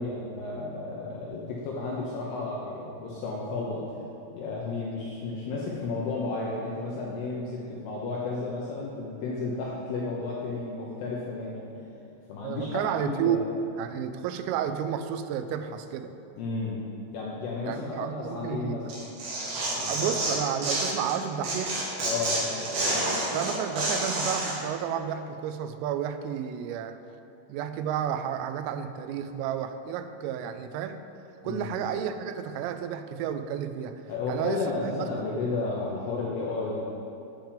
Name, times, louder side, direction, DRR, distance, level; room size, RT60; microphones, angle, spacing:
voice 1, 0.0-4.0 4.3-11.7 12.3-13.4 16.4-16.8 17.1-18.9 19.5-20.2 22.0-23.1 31.4-31.8 34.1-36.9, left 3 dB, 75° left, -4 dB, 2.4 m, -33 dB
voice 2, 12.4-13.4 13.8-16.1 17.6-18.9 19.8-21.9 23.3-27.0 27.5-31.0 31.4-33.9 34.3-34.9, right 9 dB, 85° right, 9 dB, 3.2 m, -31 dB
Tearing, 18.9-21.1 21.4-24.5, right 2 dB, 55° right, 3.4 m, -29 dB
8.7 x 5.8 x 7.3 m, 2.7 s
omnidirectional pair, 5.8 m